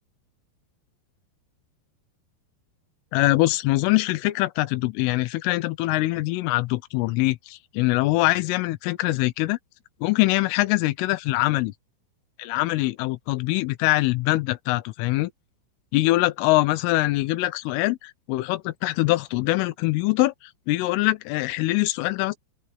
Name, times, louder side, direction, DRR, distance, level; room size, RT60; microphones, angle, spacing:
voice 1, 3.1-9.6 10.0-11.7 12.4-15.3 15.9-22.4, left 19 dB, 90° left, 3.4 m, -23 dB
open air
omnidirectional pair, 5.6 m